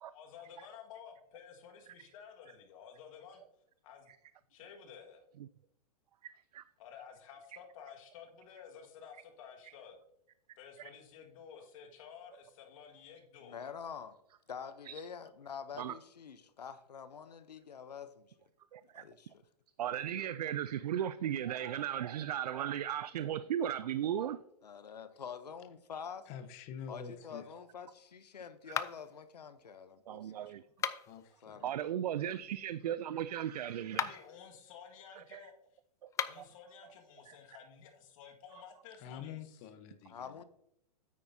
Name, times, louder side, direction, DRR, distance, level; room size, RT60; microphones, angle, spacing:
voice 1, 0.1-3.4 3.8-4.1 4.5-5.2 6.8-10.0 10.6-13.6 33.9-35.5 36.2-39.7, left 7 dB, 55° left, 2 dB, 1.8 m, -53 dB
voice 2, 6.2-6.6 14.8-14.9 15.8-15.9 18.7-19.0 19.8-24.4 30.1-30.6 31.6-34.1 35.2-35.4 36.0-36.1 36.4-36.5 37.3-37.4, right 10 dB, 75° right, 14 dB, 0.4 m, -36 dB
voice 3, 13.4-14.2 14.5-18.3 18.8-19.3 24.6-26.3 26.9-30.3 31.4-31.7 40.1-40.4, left 7 dB, 90° left, 12 dB, 0.8 m, -46 dB
voice 4, 26.3-27.4 30.4-30.5 31.1-31.7 39.0-40.4, left 7 dB, 40° left, 10 dB, 1.0 m, -47 dB
sound 1, 28.7-29.2 30.7-31.3 33.8-34.3 36.1-36.5, left 9 dB, 15° left, 0.3 m, -37 dB
9.6 x 8.5 x 2.7 m, 0.79 s
hypercardioid pair, 120°, 20 cm